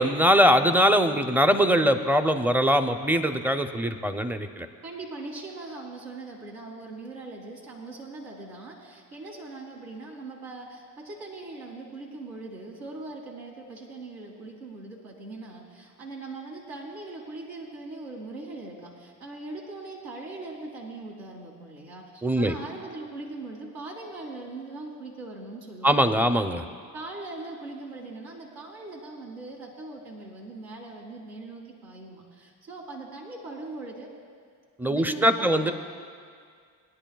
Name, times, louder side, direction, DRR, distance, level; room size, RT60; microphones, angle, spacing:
voice 1, 0.0-4.7 22.2-22.5 25.8-26.6 34.8-35.7, equal, 5° right, 8 dB, 0.6 m, -22 dB
voice 2, 4.8-26.1 26.9-34.1 34.9-35.7, right 2 dB, 75° right, -3 dB, 2.2 m, -40 dB
22.0 x 9.9 x 2.3 m, 2.1 s
supercardioid pair, 65°, 43 cm